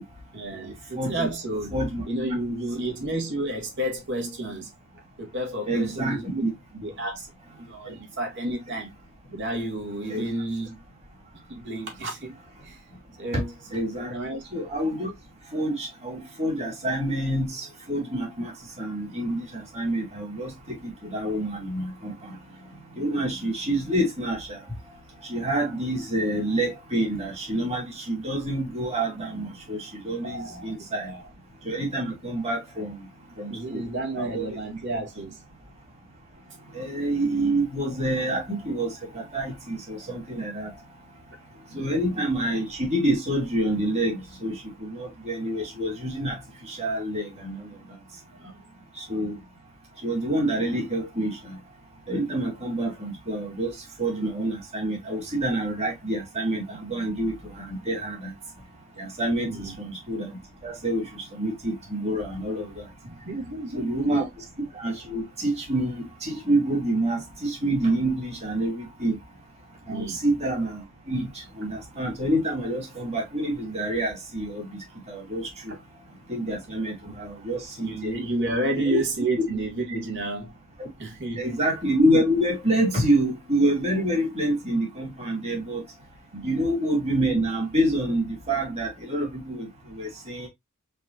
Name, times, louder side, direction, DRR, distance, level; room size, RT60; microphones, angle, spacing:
voice 1, 0.3-1.8 2.1-4.7 5.2-6.4 6.7-8.9 9.3-10.8 11.5-12.4 12.6-12.9 13.2-13.5 14.1-14.4 30.2-31.3 33.5-35.4 41.7-41.9 48.3-48.5 59.5-59.7 63.0-64.2 69.9-70.2 75.7-75.8 76.7-76.8 77.1-77.2 77.8-80.6 81.0-81.5 86.3-86.5, right 1 dB, 55° right, 2.2 m, -31 dB
voice 2, 0.9-1.3 1.7-2.0 5.7-6.5 7.9-8.0 10.1-10.2 13.7-14.1 14.5-15.1 15.5-18.5 18.8-20.5 20.8-22.3 23.0-24.6 25.3-31.1 31.6-33.0 33.4-33.8 34.2-34.5 36.7-40.7 41.7-44.5 44.8-46.4 46.7-47.6 49.1-49.3 50.0-51.3 52.1-58.3 59.0-59.5 59.8-60.3 60.6-62.7 63.7-64.3 64.8-69.2 69.9-70.8 71.1-71.3 71.6-74.6 75.1-75.7 76.3-78.1 78.7-79.0 80.8-80.9 81.4-85.8 86.4-89.7 89.9-90.5, right 1 dB, 30° right, 2.4 m, -27 dB
4.9 x 4.1 x 2.5 m
head